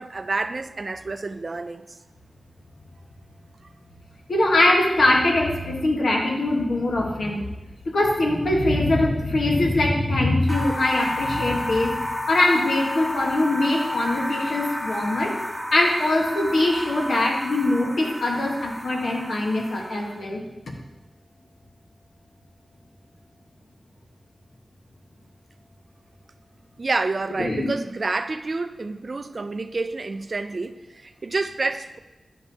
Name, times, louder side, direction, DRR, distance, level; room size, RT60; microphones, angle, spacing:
voice 1, 0.0-2.0 26.8-32.0, right 3 dB, 45° right, 10 dB, 0.4 m, -28 dB
voice 2, 4.3-7.4 7.8-11.9 12.3-15.3 15.7-20.4 27.4-27.7, left 2 dB, 75° left, 0 dB, 1.2 m, -22 dB
sound 1, 10.5-20.2, left 1 dB, 15° right, 1.5 m, -31 dB
10.0 x 5.3 x 2.8 m, 1.0 s
wide cardioid pair, 95°, 0 cm